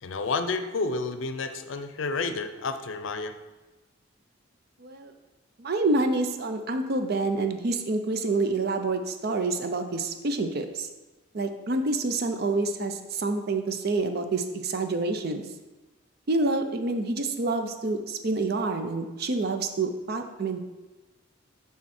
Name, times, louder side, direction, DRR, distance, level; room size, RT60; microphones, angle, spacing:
voice 1, 0.0-3.3, left 3 dB, 70° left, 9 dB, 0.6 m, -30 dB
voice 2, 4.8-5.1 5.6-10.9 11.3-15.5 16.3-20.6, right 3 dB, 50° right, 7 dB, 0.5 m, -27 dB
10.5 x 3.6 x 4.3 m, 1.1 s
head